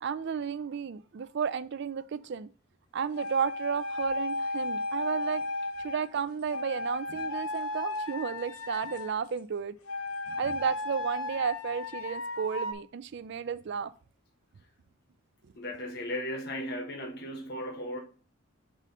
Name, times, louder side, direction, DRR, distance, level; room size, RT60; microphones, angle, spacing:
voice 1, 0.0-2.5 2.9-5.4 5.8-9.8 10.4-13.9 15.4-15.5, right 6 dB, 50° right, 0.3 m, -33 dB
sound 1, 3.2-6.1 6.5-9.2 9.9-12.7, left 2 dB, 80° left, 0.6 m, -34 dB
voice 2, 15.5-18.0, left 1 dB, 45° left, 0.9 m, -37 dB
5.5 x 4.9 x 3.8 m
head